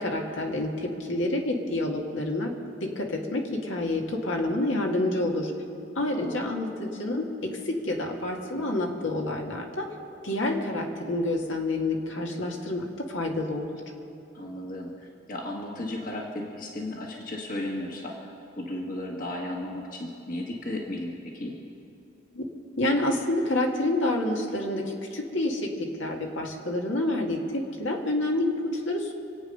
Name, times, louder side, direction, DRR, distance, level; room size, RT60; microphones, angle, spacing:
voice 1, 0.0-2.5 2.8-5.5 6.0-7.3 7.7-9.8 10.2-13.8 22.3-22.4 22.8-24.8 25.1-25.7 26.0-28.5 28.8-29.1, left 1 dB, 80° left, 0 dB, 2.0 m, -28 dB
voice 2, 6.1-6.5 14.3-21.6, left 1 dB, 45° left, 0 dB, 1.5 m, -35 dB
26.5 x 8.9 x 5.5 m, 2.9 s
head